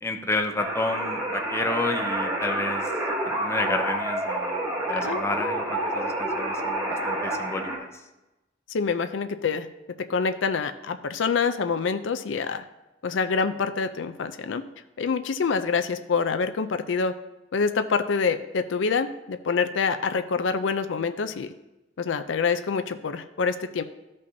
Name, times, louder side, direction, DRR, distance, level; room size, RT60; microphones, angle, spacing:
voice 1, 0.0-2.8 3.4-4.6 4.9-7.9, left 2 dB, 15° left, 5 dB, 0.6 m, -30 dB
sound 1, 0.6-7.8, right 1 dB, 20° right, 1.3 m, -28 dB
voice 2, 4.9-5.2 8.7-9.7 10.1-12.6 13.0-14.6 15.0-17.1 17.5-21.5 22.0-23.8, left 5 dB, 85° left, 9 dB, 0.5 m, -26 dB
13.5 x 5.3 x 2.7 m, 1.0 s
head